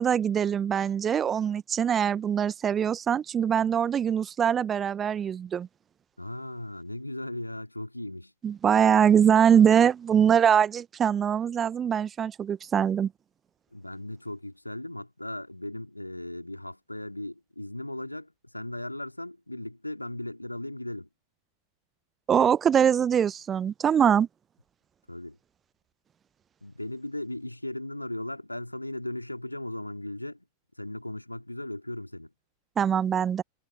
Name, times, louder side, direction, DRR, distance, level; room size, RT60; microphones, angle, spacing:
voice 1, 0.0-5.7 8.4-13.1 22.3-24.3 32.8-33.4, right 8 dB, 25° right, 0.9 m, -23 dB
voice 2, 6.2-8.3 13.7-21.1 25.1-25.4 26.6-30.5 30.8-32.3, left 1 dB, 85° left, 3.5 m, -37 dB
figure-of-eight pair, 90°, 0 cm